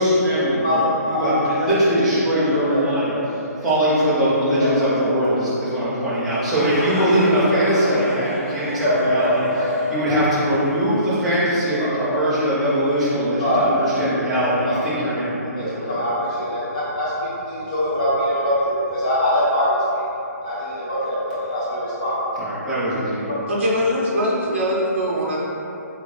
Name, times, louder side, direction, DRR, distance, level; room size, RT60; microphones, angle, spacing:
voice 1, 0.0-3.2 3.6-9.4 9.9-16.0 22.4-23.2, equal, ahead, -13 dB, 0.4 m, -21 dB
voice 2, 1.1-1.7 2.7-2.8 4.6-4.7 5.0-5.1 7.8-8.0 8.8-8.9 9.2-9.3 9.5-9.7 11.8-12.2 13.1-13.7 14.6-14.8 15.6-19.8 20.4-22.1, equal, 30° left, -11 dB, 1.4 m, -23 dB
sound 1, 6.1-11.8, left 1 dB, 45° left, 1.5 m, -33 dB
voice 3, 23.5-25.4, equal, 40° right, -4 dB, 0.7 m, -22 dB
3.8 x 3.4 x 3.1 m, 3.0 s
hypercardioid pair, 180°, 9 cm